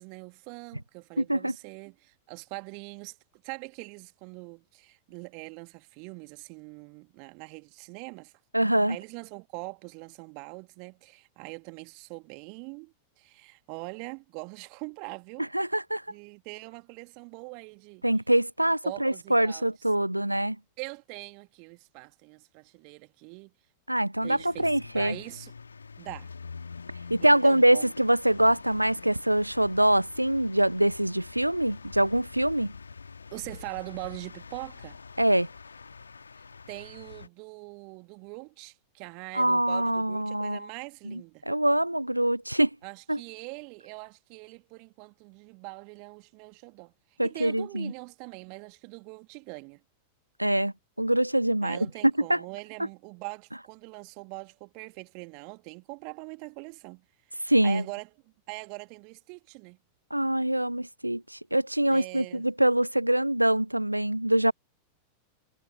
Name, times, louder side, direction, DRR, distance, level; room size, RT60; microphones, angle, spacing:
voice 1, 0.0-8.3 8.9-15.5 16.1-18.0 18.8-19.7 20.8-23.5 24.2-25.5 26.0-26.3 27.2-27.9 33.3-35.0 36.7-41.4 42.8-46.9 47.2-49.8 51.6-57.0 57.6-58.1 58.5-59.8 61.9-62.5, right 37 dB, 45° right, 2.1 m, -42 dB
voice 2, 1.2-1.6 8.5-9.0 15.4-16.0 18.0-20.6 23.9-25.2 27.1-32.7 35.2-35.5 39.3-40.7 41.0-41.2 41.5-42.7 43.1-43.2 47.2-47.9 50.4-51.8 52.2-52.4 57.5-57.8 60.1-64.5, right 1 dB, 85° right, 0.4 m, -24 dB
sound 1, 24.2-37.3, left 5 dB, 75° left, 1.9 m, -45 dB
figure-of-eight pair, 90°, 0 cm